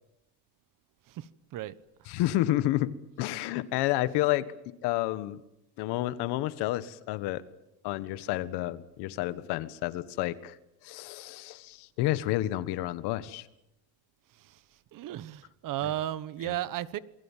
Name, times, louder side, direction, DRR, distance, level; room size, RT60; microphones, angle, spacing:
voice 1, 1.1-1.7 14.5-14.6 14.9-17.0, right 13 dB, 50° right, 1.2 m, -34 dB
voice 2, 2.1-4.5 4.8-5.4 5.8-7.4 7.8-10.6 10.8-13.5 15.8-15.9 16.4-16.5, left 15 dB, 75° left, 1.6 m, -30 dB
28.0 x 21.5 x 7.5 m
cardioid pair, 140°, 40 cm